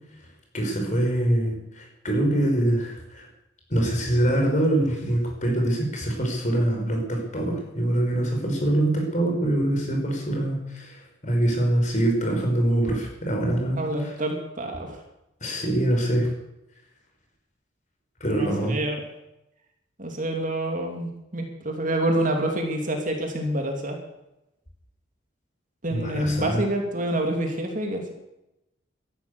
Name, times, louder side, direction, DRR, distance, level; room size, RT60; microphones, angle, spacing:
voice 1, 0.5-3.3 3.7-14.1 15.4-16.3 18.2-18.7 25.9-26.6, right 1 dB, 40° left, 1 dB, 5.2 m, -24 dB
voice 2, 13.8-15.0 18.3-19.0 20.0-24.0 25.8-28.1, right 1 dB, 40° right, 3 dB, 2.8 m, -27 dB
13.5 x 12.0 x 8.3 m, 0.88 s
head